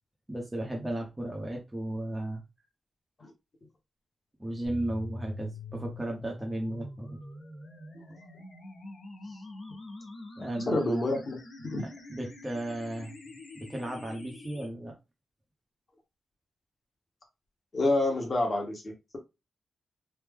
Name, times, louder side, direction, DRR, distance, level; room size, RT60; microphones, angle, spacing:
voice 1, 0.3-2.4 4.4-7.2 10.4-10.7 11.8-13.1 13.5-15.0, right 1 dB, 10° right, 0 dB, 0.7 m, -35 dB
sound 1, 4.6-14.7, left 2 dB, 75° left, 1.1 m, -45 dB
voice 2, 10.6-11.9 17.7-19.2, left 2 dB, 35° left, 1 dB, 1.0 m, -28 dB
3.3 x 2.0 x 3.6 m, 0.24 s
wide cardioid pair, 165°, 0 cm